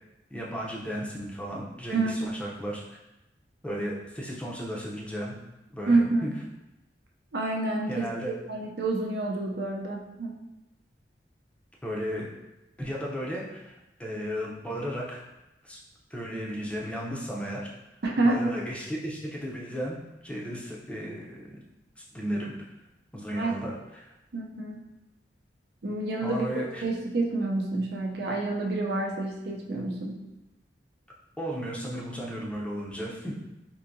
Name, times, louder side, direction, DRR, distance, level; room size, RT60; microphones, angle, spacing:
voice 1, 0.3-3.0 3.6-5.3 5.7-6.3 7.9-8.3 11.8-12.3 12.8-15.2 15.6-15.8 16.1-17.7 18.2-20.0 20.2-21.6 22.0-22.5 23.1-24.1 26.2-26.8 31.4-33.4, equal, 5° left, -3 dB, 0.6 m, -34 dB
voice 2, 5.9-6.3 7.3-8.1 8.5-10.4 18.0-18.4 23.3-23.7 24.3-24.9 25.8-30.2, right 2 dB, 65° right, 0 dB, 0.6 m, -28 dB
4.6 x 2.7 x 2.6 m, 0.97 s
head